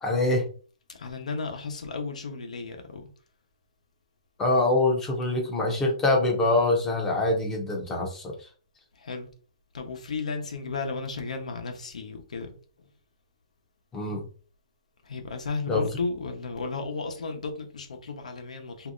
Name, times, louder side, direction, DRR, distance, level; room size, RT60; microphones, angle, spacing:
voice 1, 0.0-0.4 4.4-8.3 13.9-14.3 15.7-15.8, left 2 dB, 10° left, 0.6 m, -24 dB
voice 2, 0.9-3.1 8.9-9.3 9.7-12.9 15.0-18.9, left 4 dB, 90° left, 0.9 m, -34 dB
3.1 x 2.7 x 2.5 m
hypercardioid pair, 170°, 4 cm